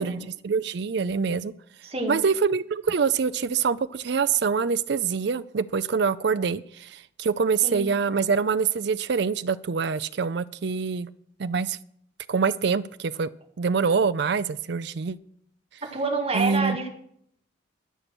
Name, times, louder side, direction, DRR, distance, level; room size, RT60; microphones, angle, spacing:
voice 1, 0.0-1.5 2.1-11.1 11.4-11.8 12.3-13.3 13.6-15.2 16.3-16.8, right 5 dB, 55° right, 13 dB, 0.4 m, -25 dB
voice 2, 1.8-2.2 7.6-7.9 15.8-16.9, right 3 dB, 30° right, 0 dB, 2.0 m, -28 dB
20.0 x 6.8 x 6.1 m, 0.69 s
head